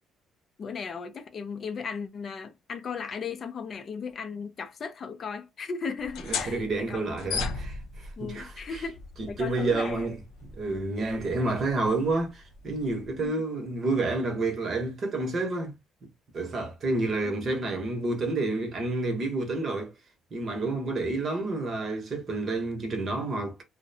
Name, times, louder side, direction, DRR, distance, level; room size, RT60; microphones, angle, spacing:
voice 1, 0.6-7.5 8.2-10.1 11.1-11.5 13.2-13.3 17.4-17.6, left 5 dB, 35° left, 0.4 m, -37 dB
sound 1, 6.0-13.3, left 4 dB, 90° left, 0.5 m, -38 dB
voice 2, 6.3-8.8 9.4-10.2 10.4-15.7 16.3-19.9 20.3-23.6, right 2 dB, 35° right, 0.8 m, -29 dB
2.6 x 2.0 x 2.6 m
cardioid pair, 155°, 0 cm